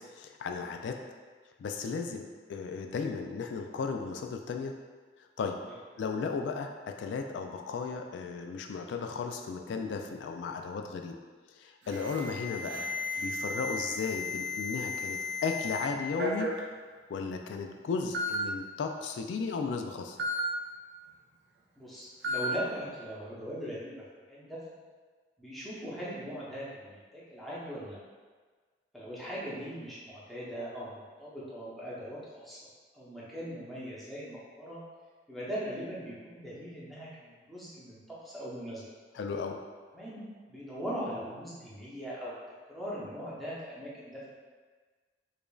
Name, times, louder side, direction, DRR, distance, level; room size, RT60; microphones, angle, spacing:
voice 1, 0.1-1.0 1.6-4.7 5.4-5.6 6.0-11.1 11.5-12.9 13.2-16.5 17.1-20.2 39.1-39.6, left 5 dB, 90° left, 4 dB, 0.3 m, -35 dB
Alarm, 11.9-15.8 16.2-16.6 17.4-17.5 18.1-18.4 20.2-20.4 22.2-22.5, left 2 dB, 75° right, 0.6 m, -34 dB
voice 2, 21.8-24.0 24.3-24.6 25.4-28.0 28.9-32.6 32.9-34.8 35.3-38.8 39.9-40.2 40.5-42.3 42.7-44.3, equal, ahead, -9 dB, 0.8 m, -40 dB
4.9 x 2.5 x 2.3 m, 1.4 s
head